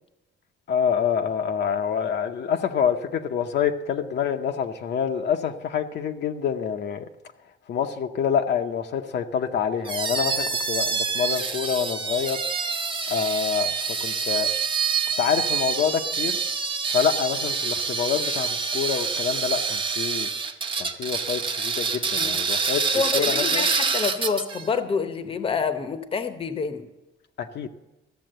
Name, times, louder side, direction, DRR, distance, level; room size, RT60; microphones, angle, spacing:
voice 1, 0.7-7.1 7.7-12.4 13.1-14.5 15.2-16.4 16.9-20.3 20.8-22.8 23.1-23.6 27.4-27.7, left 7 dB, 55° left, 5 dB, 0.7 m, -26 dB
sound 1, 9.8-24.7, right 5 dB, 25° right, 0.7 m, -26 dB
voice 2, 22.9-26.8, left 5 dB, 25° left, 9 dB, 0.8 m, -27 dB
14.0 x 7.1 x 7.8 m, 0.99 s
cardioid pair, 155°, 21 cm